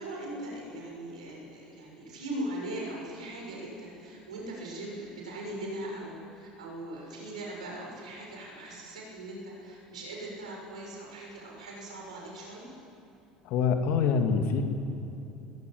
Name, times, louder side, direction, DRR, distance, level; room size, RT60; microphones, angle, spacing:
voice 1, 0.0-12.7, right 1 dB, 80° right, -2 dB, 6.8 m, -40 dB
voice 2, 13.4-14.6, left 6 dB, 60° left, 5 dB, 2.4 m, -25 dB
20.5 x 17.0 x 9.3 m, 2.8 s
hypercardioid pair, 65°, 4 cm